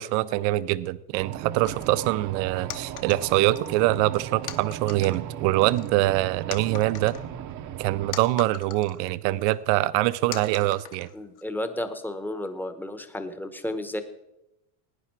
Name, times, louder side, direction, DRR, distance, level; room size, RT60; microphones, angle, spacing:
voice 1, 0.0-7.1 7.8-11.1, right 17 dB, 80° right, 16 dB, 0.6 m, -24 dB
sound 1, 1.2-8.1, right 10 dB, 40° right, 0.8 m, -37 dB
sound 2, 1.6-2.0 2.7-3.8 4.5-5.2 5.6-6.2 6.5-9.0 9.5-9.6 10.3-11.4, left 10 dB, 40° left, 1.0 m, -41 dB
voice 2, 11.1-14.0, left 1 dB, 5° left, 9 dB, 0.9 m, -32 dB
17.5 x 9.7 x 4.6 m, 0.91 s
cardioid pair, 140°, 47 cm